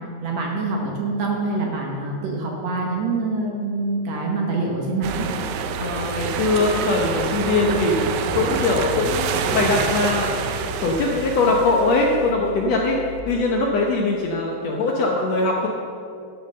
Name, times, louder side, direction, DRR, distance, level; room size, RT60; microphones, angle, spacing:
voice 1, 0.2-5.3, right 3 dB, 65° right, -1 dB, 1.9 m, -25 dB
sound 1, 5.0-13.2, right 5 dB, 85° right, 2.4 m, -27 dB
voice 2, 5.8-8.0 8.3-10.3 10.8-13.0 13.2-15.7, left 2 dB, 70° left, -1 dB, 1.7 m, -21 dB
11.0 x 6.7 x 6.6 m, 2.5 s
omnidirectional pair, 4.0 m